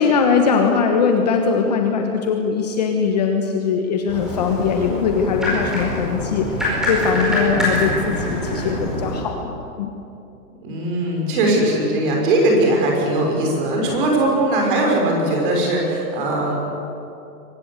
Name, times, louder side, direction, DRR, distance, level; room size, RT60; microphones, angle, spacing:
voice 1, 0.0-9.9, left 5 dB, 25° left, 3 dB, 1.2 m, -20 dB
sound 1, 4.1-9.2, left 1 dB, ahead, 4.8 m, -24 dB
voice 2, 10.6-16.6, right 1 dB, 35° right, 0 dB, 5.9 m, -19 dB
24.0 x 19.5 x 8.1 m, 2.7 s
hypercardioid pair, 175°, 47 cm